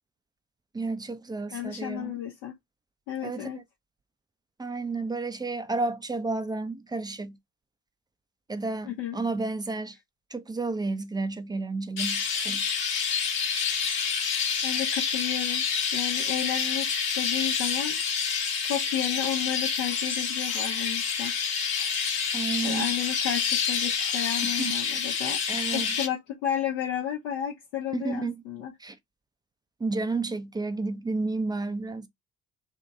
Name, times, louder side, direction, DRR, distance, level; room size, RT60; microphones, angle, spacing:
voice 1, 0.7-2.1 3.2-3.5 4.6-7.4 8.5-10.0 10.3-12.6 22.3-22.9 24.4-24.7 25.5-25.9 27.9-28.4 28.8-29.0 29.8-32.1, right 3 dB, 10° right, 0.3 m, -31 dB
voice 2, 1.5-2.5 3.1-3.6 8.9-9.2 14.6-15.6 15.9-16.9 17.2-18.0 18.7-21.3 22.6-28.7, left 10 dB, 80° left, 0.9 m, -32 dB
Chirp tweet, 12.0-26.1, left 6 dB, 50° left, 1.2 m, -28 dB
2.9 x 2.7 x 3.5 m
figure-of-eight pair, 45°, 47 cm